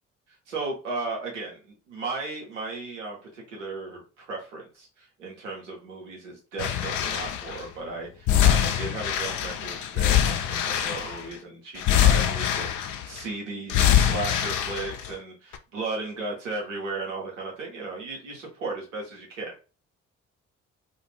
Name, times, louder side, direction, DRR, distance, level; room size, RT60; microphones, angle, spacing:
voice 1, 0.5-19.6, right 3 dB, 90° right, -2 dB, 0.9 m, -35 dB
sound 1, 6.6-7.6 8.3-11.3 11.8-13.2 13.7-15.1 15.5-15.6, left 10 dB, 55° left, 0.5 m, -23 dB
2.4 x 2.4 x 3.3 m, 0.34 s
figure-of-eight pair, 45°, 36 cm